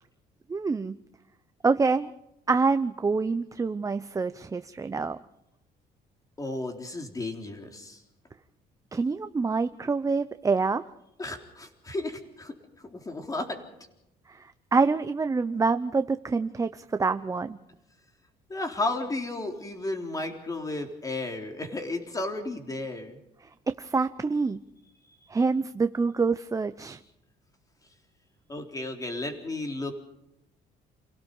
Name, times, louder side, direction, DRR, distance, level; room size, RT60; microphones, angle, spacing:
voice 1, 0.5-1.0 1.6-2.1 2.5-5.2 8.9-10.8 14.3-17.6 23.8-24.6 25.3-27.0, right 4 dB, 20° right, 10 dB, 0.7 m, -26 dB
voice 2, 6.4-8.0 11.2-12.5 12.8-13.6 18.5-23.2 28.5-29.9, left 2 dB, 20° left, 3 dB, 3.8 m, -33 dB
29.0 x 17.0 x 5.5 m, 0.85 s
cardioid pair, 110°, 17 cm